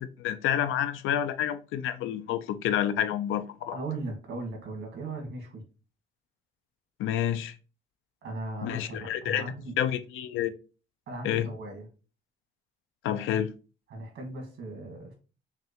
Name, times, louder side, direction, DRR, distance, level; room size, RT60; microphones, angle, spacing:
voice 1, 0.0-3.8 7.0-7.5 8.6-9.4 9.8-10.5 11.2-11.5 13.0-13.5, left 10 dB, 85° left, 0.4 m, -29 dB
voice 2, 3.7-5.6 8.2-9.7 11.1-11.9 13.9-15.1, right 2 dB, 70° right, 1.6 m, -38 dB
5.7 x 2.1 x 2.8 m
cardioid pair, 90°, 20 cm